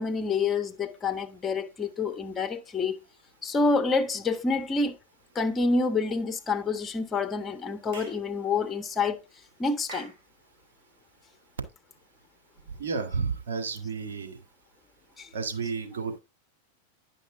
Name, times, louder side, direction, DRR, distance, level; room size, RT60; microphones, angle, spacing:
voice 1, 0.0-3.0 3.4-4.9 5.3-9.2 9.6-10.1 15.2-15.3, left 4 dB, 20° left, 1.3 m, -27 dB
Clapping / Chirp tweet, 7.9-8.2 9.9-10.2, right 3 dB, 55° right, 3.1 m, -42 dB
voice 2, 12.8-14.4 15.3-16.2, right 5 dB, 75° right, 1.8 m, -31 dB
10.0 x 5.5 x 3.7 m
hypercardioid pair, 95°, 0 cm